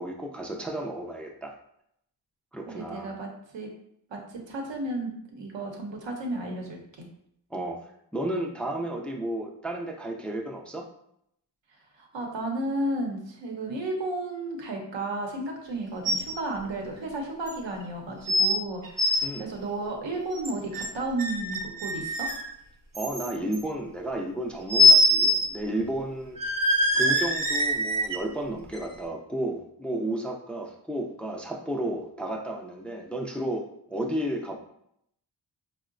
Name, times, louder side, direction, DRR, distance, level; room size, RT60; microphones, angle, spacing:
voice 1, 0.0-1.6 2.5-3.1 7.5-7.8 8.1-10.9 19.2-19.5 22.9-26.4 26.9-34.6, right 1 dB, 5° left, 0 dB, 0.4 m, -32 dB
voice 2, 2.7-3.7 4.1-7.1 12.0-22.3, right 2 dB, 80° right, 1 dB, 0.8 m, -33 dB
sound 1, 16.1-16.3 16.7-16.8 17.5-17.6 18.3-18.5 18.8-19.2 20.3-20.9 21.2-22.5 22.9-23.6 24.7-25.5 25.8-25.9 26.4-28.2 28.7-28.8, left 1 dB, 50° right, 0.8 m, -23 dB
3.7 x 2.1 x 2.5 m, 0.73 s
cardioid pair, 50°, 44 cm